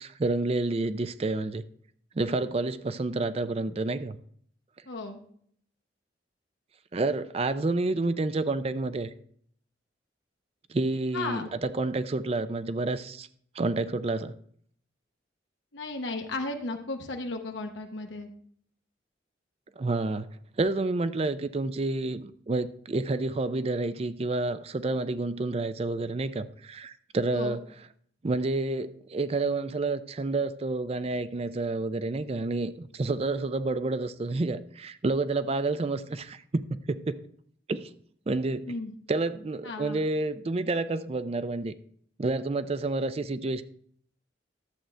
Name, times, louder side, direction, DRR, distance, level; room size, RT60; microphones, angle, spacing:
voice 1, 0.0-1.6 2.2-4.2 6.9-9.1 10.7-13.3 13.5-14.3 19.8-20.3 20.6-27.6 28.2-37.2 37.7-37.9 38.3-38.7 39.1-41.7 42.2-43.6, right 2 dB, 35° right, 0.4 m, -29 dB
voice 2, 4.9-5.2 11.1-11.5 15.7-18.3 27.3-27.6 38.7-38.9 39.6-40.0, left 3 dB, 80° left, 0.9 m, -35 dB
11.5 x 7.6 x 3.3 m
head